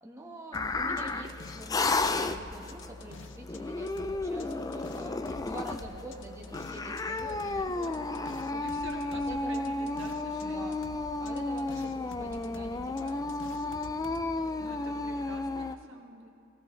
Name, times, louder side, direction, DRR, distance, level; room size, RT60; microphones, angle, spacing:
voice 1, 0.0-7.9 8.5-8.7 9.1-9.7 10.4-10.8 11.2-13.5, right 1 dB, 15° right, 0 dB, 1.4 m, -46 dB
sound 1, 0.5-3.6 3.9-10.5 10.7-14.2, left 3 dB, 60° left, 0.6 m, -50 dB
sound 2, 0.5-15.8, left 3 dB, 15° left, 0.3 m, -33 dB
voice 2, 7.7-10.8 14.6-16.3, right 2 dB, 60° right, 1 dB, 1.6 m, -47 dB
22.0 x 16.0 x 3.3 m, 2.5 s
head